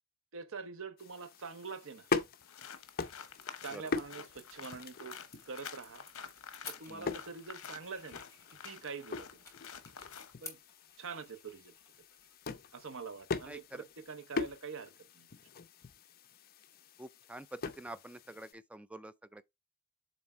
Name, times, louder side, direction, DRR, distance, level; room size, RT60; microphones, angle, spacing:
voice 1, 0.3-2.1 3.6-5.2 5.4-6.0 6.7-8.2 8.6-9.4 10.4-10.6 11.0-11.7 12.7-15.3, right 5 dB, 60° right, 0.8 m, -45 dB
sound 1, 1.0-18.5, left 4 dB, 40° left, 0.6 m, -42 dB
sound 2, 2.4-10.3, left 7 dB, 65° left, 0.9 m, -49 dB
sound 3, 2.7-14.1, left 3 dB, 15° left, 3.3 m, -56 dB
voice 2, 13.5-13.8 17.0-19.4, right 1 dB, 5° right, 0.3 m, -47 dB
7.3 x 3.5 x 4.3 m
head